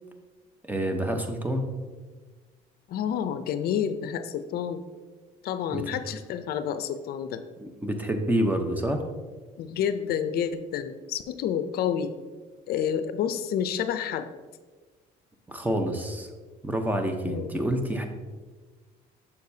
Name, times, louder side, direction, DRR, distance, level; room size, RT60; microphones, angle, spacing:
voice 1, 0.6-1.6 5.7-5.8 7.6-9.0 15.5-16.3 16.6-18.1, right 1 dB, 10° right, 5 dB, 0.8 m, -27 dB
voice 2, 2.9-4.8 5.4-7.4 9.6-12.1 12.7-14.3 17.2-17.6, left 8 dB, 65° left, 11 dB, 0.5 m, -29 dB
6.8 x 6.6 x 2.7 m, 1.4 s
cardioid pair, 110°, 17 cm